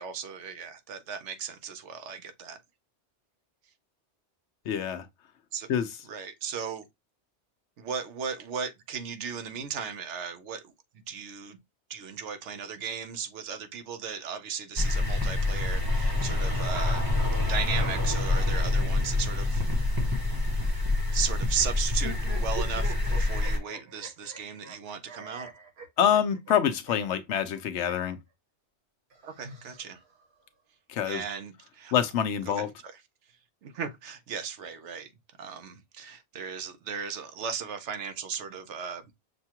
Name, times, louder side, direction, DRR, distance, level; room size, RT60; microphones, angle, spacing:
voice 1, 0.0-2.6 5.5-5.7 6.1-6.8 7.8-10.7 11.1-11.6 11.9-17.1 17.4-19.9 21.1-25.5 29.2-30.0 31.0-31.9 32.5-33.0 33.6-35.1 35.4-39.0, right 6 dB, 80° right, 1.0 m, -36 dB
voice 2, 4.7-5.1 5.7-5.9 26.0-28.2 30.9-31.2 31.9-32.7, left 9 dB, 80° left, 1.0 m, -26 dB
sound 1, 14.8-23.6, left 2 dB, 20° right, 0.9 m, -26 dB
sound 2, 21.9-28.1 29.1-30.2, right 3 dB, 65° right, 1.5 m, -43 dB
6.4 x 2.3 x 2.9 m
omnidirectional pair, 1.2 m